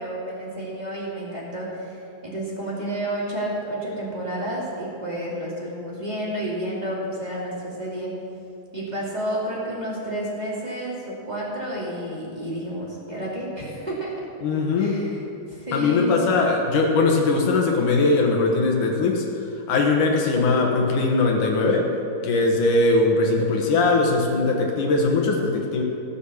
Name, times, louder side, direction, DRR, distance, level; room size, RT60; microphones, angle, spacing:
voice 1, 0.0-2.0 2.2-8.1 8.7-14.2 14.8-15.2 15.5-16.2, right 1 dB, 15° right, -6 dB, 2.2 m, -30 dB
voice 2, 14.4-15.1 15.7-21.9 22.2-25.8, left 3 dB, 70° left, 0 dB, 2.7 m, -20 dB
17.0 x 6.5 x 7.1 m, 2.8 s
omnidirectional pair, 3.8 m